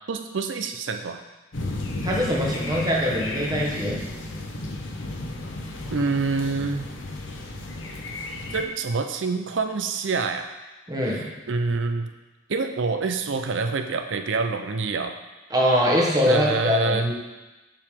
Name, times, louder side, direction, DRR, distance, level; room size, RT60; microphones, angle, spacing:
voice 1, 0.1-1.2 5.9-6.9 8.5-10.5 11.5-12.1 12.5-15.1 16.3-17.1, right 4 dB, 75° right, 7 dB, 0.6 m, -26 dB
sound 1, 1.5-8.6, left 2 dB, 80° left, 0.8 m, -33 dB
voice 2, 2.0-4.0 10.9-11.3 15.5-17.1, equal, 20° right, -3 dB, 1.1 m, -23 dB
7.5 x 4.8 x 3.6 m, 1.1 s
head